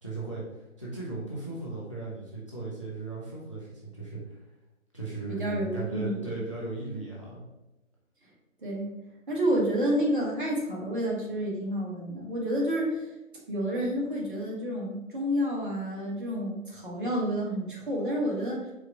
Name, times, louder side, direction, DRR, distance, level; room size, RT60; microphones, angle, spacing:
voice 1, 0.0-4.4 4.9-7.4, right 3 dB, 25° left, -5 dB, 0.5 m, -37 dB
voice 2, 5.3-6.1 8.6-8.9 9.3-13.0 13.5-18.7, equal, 40° right, -3 dB, 1.2 m, -29 dB
4.7 x 2.3 x 4.8 m, 1.0 s
figure-of-eight pair, 155°, 40 cm